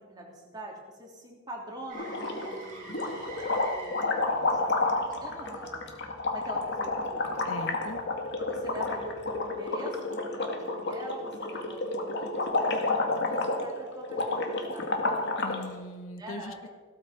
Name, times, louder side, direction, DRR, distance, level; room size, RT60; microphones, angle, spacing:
voice 1, 0.0-4.9 5.2-5.9 6.3-7.3 8.4-14.9 16.2-16.6, right 1 dB, 20° right, -1 dB, 3.2 m, -44 dB
Motor vehicle (road), 1.9-9.8 14.1-14.3, right 2 dB, 40° right, 5.4 m, -50 dB
sound 1, 2.0-2.6 2.9-15.6, left 2 dB, 55° left, 2.1 m, -30 dB
voice 2, 7.5-8.0 15.4-16.7, left 1 dB, 80° left, 8 dB, 1.3 m, -40 dB
16.0 x 13.0 x 5.2 m, 1.5 s
head